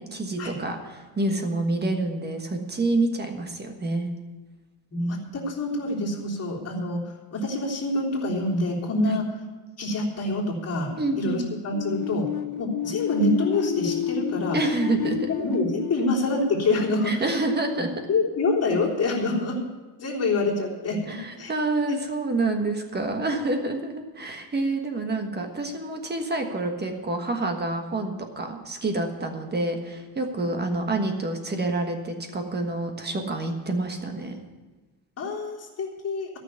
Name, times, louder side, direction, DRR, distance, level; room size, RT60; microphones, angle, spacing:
voice 1, 0.1-4.1 9.1-9.2 11.0-11.5 14.5-15.3 17.0-17.9 21.1-34.3, right 2 dB, 20° right, 4 dB, 1.4 m, -28 dB
voice 2, 4.9-9.2 9.8-12.3 12.6-14.6 15.3-17.2 18.1-19.6 20.0-21.5 35.2-36.3, left 2 dB, 35° left, -4 dB, 3.4 m, -26 dB
sound 1, 11.7-17.4, left 9 dB, 50° left, 0.7 m, -30 dB
13.5 x 6.2 x 9.4 m, 1.2 s
cardioid pair, 150°, 45 cm